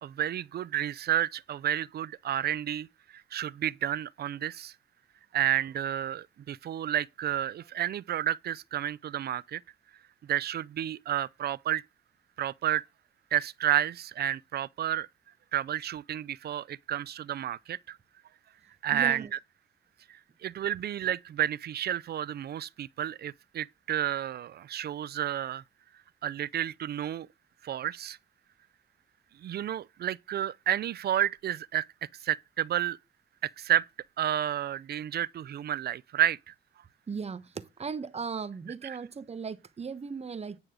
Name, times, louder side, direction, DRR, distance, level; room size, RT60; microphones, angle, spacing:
voice 1, 0.0-2.9 3.1-4.7 5.3-9.6 10.3-11.8 12.4-12.8 13.3-15.1 15.5-18.0 18.8-19.2 20.1-25.6 26.2-27.3 27.6-28.2 29.4-33.0 33.4-33.9 34.2-36.5 38.8-39.0, right 11 dB, 55° right, 0.5 m, -31 dB
voice 2, 18.9-19.3 37.1-40.6, right 5 dB, 30° right, 1.1 m, -37 dB
9.9 x 6.3 x 5.1 m
cardioid pair, 90°, 20 cm